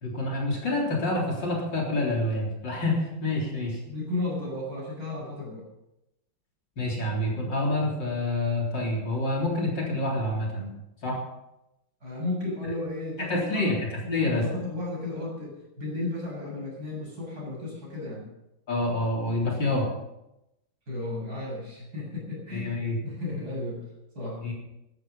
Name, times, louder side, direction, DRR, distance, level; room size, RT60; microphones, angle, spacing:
voice 1, 0.0-3.8 6.8-10.7 11.0-11.2 13.2-14.5 18.7-19.9 22.5-23.0 24.4-24.5, left 2 dB, 55° left, -2 dB, 4.3 m, -27 dB
voice 2, 3.8-5.7 12.0-13.7 14.0-18.3 20.9-22.7 23.0-23.9 24.1-24.4, left 2 dB, 45° right, -3 dB, 8.0 m, -34 dB
14.5 x 13.0 x 5.6 m, 0.89 s
omnidirectional pair, 2.4 m